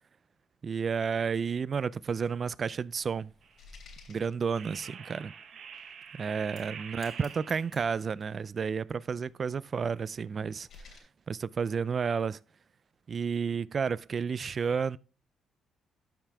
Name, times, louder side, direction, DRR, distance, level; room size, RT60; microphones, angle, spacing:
voice 1, 0.6-3.3 4.1-5.3 6.1-12.4 13.1-15.0, right 6 dB, 45° right, 0.4 m, -31 dB
sound 1, 1.7-5.0 5.6-5.7 6.4-6.7 7.0-8.4 9.1-11.0, left 4 dB, 65° left, 3.1 m, -56 dB
sound 2, 3.4-3.7 4.6-7.9, right 7 dB, 60° right, 1.0 m, -46 dB
13.0 x 5.6 x 3.4 m
cardioid pair, 90°, 0 cm